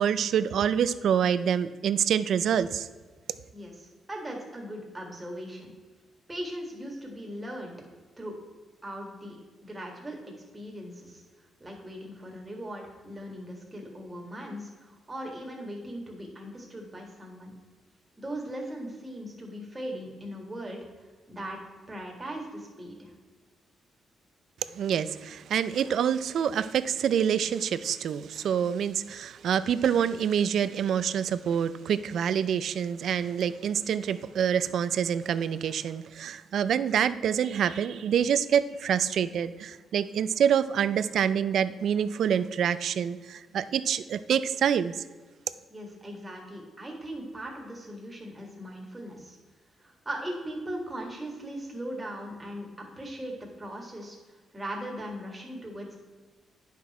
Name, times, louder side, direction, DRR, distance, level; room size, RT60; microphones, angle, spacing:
voice 1, 0.0-2.9 24.7-45.0, right 8 dB, 65° right, 14 dB, 0.4 m, -26 dB
voice 2, 3.5-5.7 6.3-7.7 8.2-8.3 8.8-11.2 11.6-17.5 18.2-20.9 21.3-21.6 21.9-23.1 45.7-49.4 49.8-56.0, right 1 dB, 15° right, 0 dB, 1.9 m, -39 dB
9.2 x 6.0 x 4.3 m, 1.4 s
cardioid pair, 130°, 0 cm